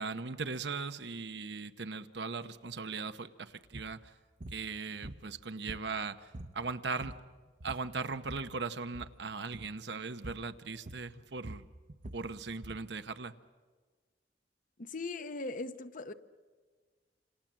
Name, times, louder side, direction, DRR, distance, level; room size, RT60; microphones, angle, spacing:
voice 1, 0.0-4.1 4.5-7.2 7.6-11.7 12.1-13.3, right 4 dB, 70° right, 1.0 m, -39 dB
sound 1, 3.7-3.9 4.4-4.6 5.0-6.0 6.3-6.6 6.9-7.3 7.6-8.5 8.9-9.2 9.5-9.8 10.2-10.5 10.9-12.9, right 1 dB, 45° right, 0.9 m, -46 dB
voice 2, 14.8-16.1, left 3 dB, 50° left, 0.9 m, -39 dB
28.5 x 27.5 x 7.5 m
head